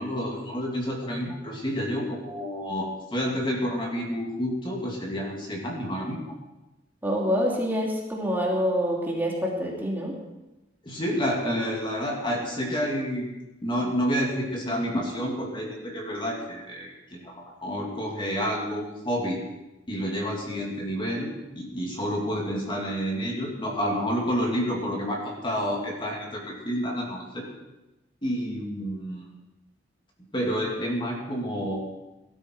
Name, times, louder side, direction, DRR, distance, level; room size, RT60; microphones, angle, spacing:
voice 1, 0.0-6.3 10.8-13.3 13.6-19.4 19.9-27.5 28.2-29.3 30.3-31.8, equal, 25° left, -1 dB, 2.7 m, -29 dB
voice 2, 7.0-10.2, equal, 10° right, -3 dB, 2.8 m, -26 dB
18.5 x 12.5 x 4.7 m, 1.0 s
head